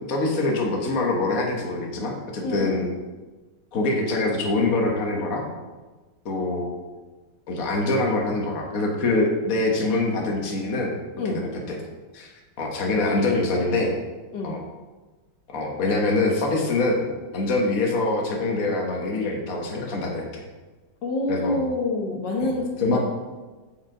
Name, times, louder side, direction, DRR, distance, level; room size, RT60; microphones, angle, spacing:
voice 1, 0.1-2.9 3.7-5.5 6.2-6.7 7.5-10.9 11.3-11.5 12.1-12.3 12.6-13.9 14.4-14.6 15.5-17.1 17.3-20.4 21.3-21.6 22.3-22.5 22.8-23.0, left 2 dB, 50° left, 0 dB, 1.6 m, -24 dB
voice 2, 2.4-2.8 11.2-11.5 14.3-14.6 21.0-23.0, left 2 dB, 80° left, 0 dB, 1.7 m, -27 dB
7.5 x 7.1 x 3.8 m, 1.3 s
omnidirectional pair, 2.0 m